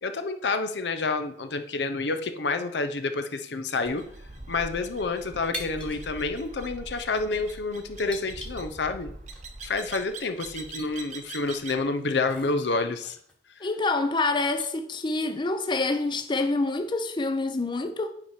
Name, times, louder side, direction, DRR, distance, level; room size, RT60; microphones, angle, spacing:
voice 1, 0.0-4.0 4.5-9.1 9.6-13.2 13.6-13.7, left 3 dB, 70° left, 0.7 m, -29 dB
sound 1, 3.8-11.9, right 3 dB, 45° right, 1.0 m, -43 dB
sound 2, 5.5-6.0 6.3-6.5 7.2-7.4 8.1-9.0 9.3-9.4 10.0-10.1 10.4-10.9 11.3-11.4 11.8-14.0 14.4-14.7 15.2-16.5, equal, 5° left, 1.2 m, -43 dB
voice 2, 13.6-18.1, left 3 dB, 25° left, 0.6 m, -27 dB
8.5 x 4.8 x 4.4 m
head